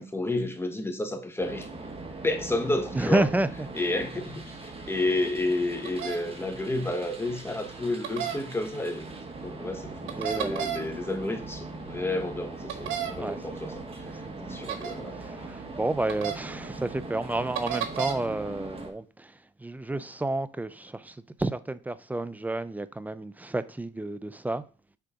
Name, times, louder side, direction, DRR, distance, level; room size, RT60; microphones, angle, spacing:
voice 1, 0.0-1.7 2.2-3.2 3.7-9.2 9.4-13.7 14.4-15.2, left 2 dB, 10° left, 1.1 m, -31 dB
sound 1, 1.4-18.9, right 3 dB, 30° right, 1.4 m, -41 dB
voice 2, 2.9-3.7 10.2-10.7 13.1-13.8 14.2-24.6, right 2 dB, 10° right, 0.4 m, -31 dB
sound 2, 5.8-6.2 8.0-8.4 10.1-10.8 12.7-13.1 14.7-14.9 16.1-16.3 17.5-18.1, right 10 dB, 85° right, 1.0 m, -31 dB
5.7 x 3.8 x 5.0 m
cardioid pair, 90°, 20 cm